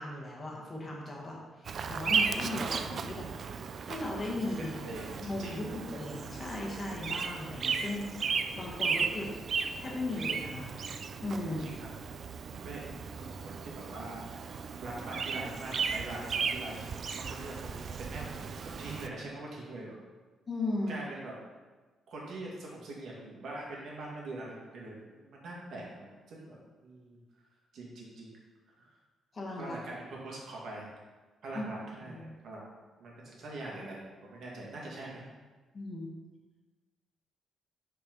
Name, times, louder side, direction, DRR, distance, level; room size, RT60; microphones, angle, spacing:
voice 1, 0.0-3.3 3.8-9.4 9.8-10.7 11.2-11.7 20.5-21.0 29.3-29.8 31.5-31.7 32.0-32.3 35.7-36.1, left 2 dB, 35° left, -2 dB, 1.6 m, -37 dB
Bird vocalization bird call bird song, 1.6-19.1, right 5 dB, 50° right, 0.4 m, -35 dB
voice 2, 4.6-5.6 11.6-11.9 12.5-16.9 17.1-20.0 20.9-21.3 22.1-27.5 27.7-28.3 28.8-28.9 29.6-30.8 31.4-32.6 33.0-35.2, right 2 dB, 65° right, -3 dB, 1.9 m, -43 dB
5.5 x 4.4 x 5.3 m, 1.3 s
cardioid pair, 105°, 0 cm